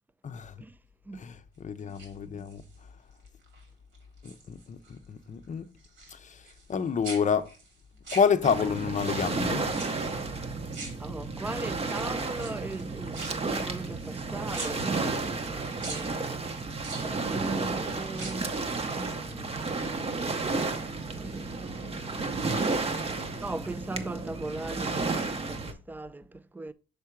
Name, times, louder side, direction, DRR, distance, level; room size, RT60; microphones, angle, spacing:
voice 1, 0.2-0.5 1.2-2.6 4.2-5.7 6.1-6.4 6.7-7.5 8.1-9.6, left 6 dB, 40° left, 0.6 m, -28 dB
sound 1, 1.8-2.8 3.2-3.6 3.9-5.0 5.2-6.8 7.0-8.8 9.7-10.3 10.7-11.6 12.3-14.2 14.5-15.5 15.8-16.1 16.8-17.6 18.1-18.6 18.9-19.0, right 3 dB, 80° right, 2.5 m, -43 dB
Waves surf, 8.4-25.7, right 3 dB, 30° right, 0.8 m, -32 dB
voice 2, 11.0-16.5 17.3-18.6 18.9-19.7 21.1-26.7, right 2 dB, 10° right, 0.3 m, -39 dB
6.6 x 3.6 x 4.5 m
cardioid pair, 90°, 20 cm